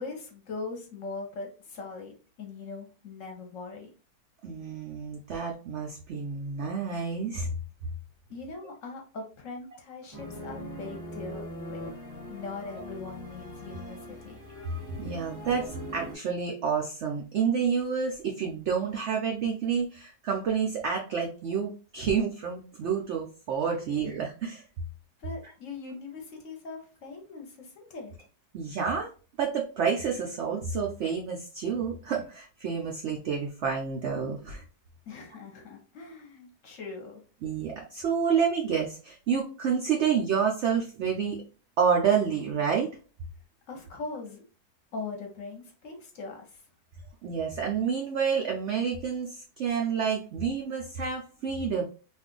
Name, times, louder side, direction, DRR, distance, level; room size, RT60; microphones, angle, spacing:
voice 1, 0.0-3.9 8.3-11.8 12.3-14.4 25.2-28.3 35.1-37.2 43.7-44.4 44.9-46.6, left 3 dB, 60° left, 2 dB, 0.9 m, -41 dB
voice 2, 4.4-7.5 14.9-24.6 28.5-29.1 29.4-34.6 37.4-41.4 41.8-42.9 47.2-51.8, right 6 dB, 80° right, 0 dB, 0.6 m, -29 dB
sound 1, 10.1-16.1, equal, 5° left, 0.8 m, -41 dB
2.6 x 2.3 x 3.7 m, 0.37 s
omnidirectional pair, 1.7 m